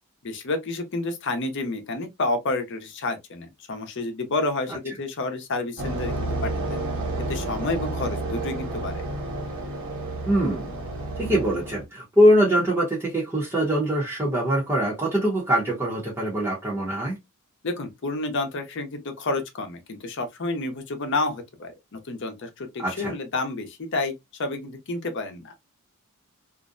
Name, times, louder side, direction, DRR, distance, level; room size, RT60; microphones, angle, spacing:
voice 1, 0.2-6.8 7.2-9.0 17.6-24.1 24.4-25.5, left 2 dB, 55° left, 0.6 m, -30 dB
sound 1, 5.8-11.8, right 2 dB, 65° right, 1.1 m, -30 dB
voice 2, 10.3-10.7 11.2-17.2 22.8-23.1, equal, 10° right, 0.7 m, -23 dB
2.5 x 2.1 x 2.4 m
head